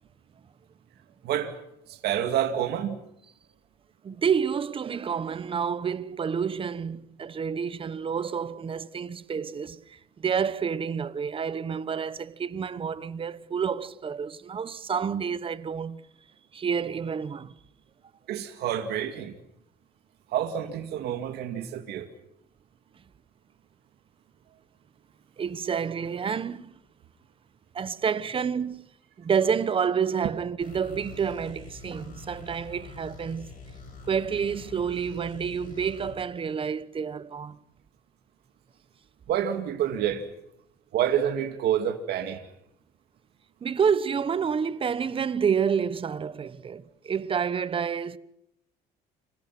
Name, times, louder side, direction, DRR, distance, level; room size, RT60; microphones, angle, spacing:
voice 1, 1.9-3.0 18.3-19.3 20.3-22.1 39.3-40.2 40.9-42.4, right 10 dB, 75° right, 2.4 m, -28 dB
voice 2, 4.0-16.0 16.5-17.5 25.4-26.8 27.7-28.9 29.2-33.5 34.1-37.6 43.6-48.2, right 7 dB, 30° right, 1.1 m, -29 dB
sound 1, 30.6-36.2, left 3 dB, 50° left, 8.0 m, -45 dB
30.0 x 26.5 x 6.1 m
cardioid pair, 125°, 17 cm